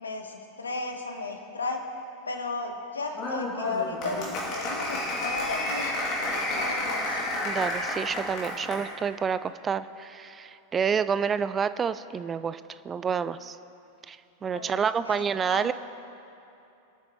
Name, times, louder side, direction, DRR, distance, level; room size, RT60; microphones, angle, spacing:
voice 1, 0.0-1.8 2.3-7.2 14.5-14.8 15.0-15.7, left 3 dB, 75° left, 5 dB, 1.5 m, -34 dB
Applause, 3.1-8.9, left 1 dB, 40° left, 3.0 m, -31 dB
voice 2, 7.4-13.6 14.1-14.2 14.4-15.7, right 6 dB, 20° right, 13 dB, 0.4 m, -28 dB
25.0 x 9.2 x 3.3 m, 2.9 s
figure-of-eight pair, 90°, 0 cm